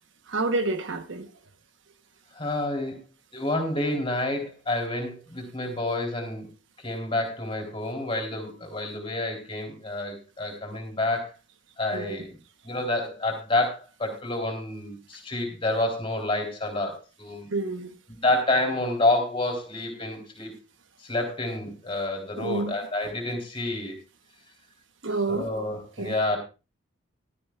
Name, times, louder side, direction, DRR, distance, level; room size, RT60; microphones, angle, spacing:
voice 1, 0.3-1.3 11.9-12.2 17.5-17.9 22.4-22.7 25.0-25.5 26.0-26.1, right 3 dB, 70° right, 1.1 m, -28 dB
voice 2, 2.4-3.0 3.3-6.5 6.8-11.3 11.8-12.4 12.6-17.5 18.1-20.5 21.0-24.0 25.3-26.4, left 2 dB, 25° left, 3.6 m, -28 dB
16.5 x 12.5 x 2.4 m
head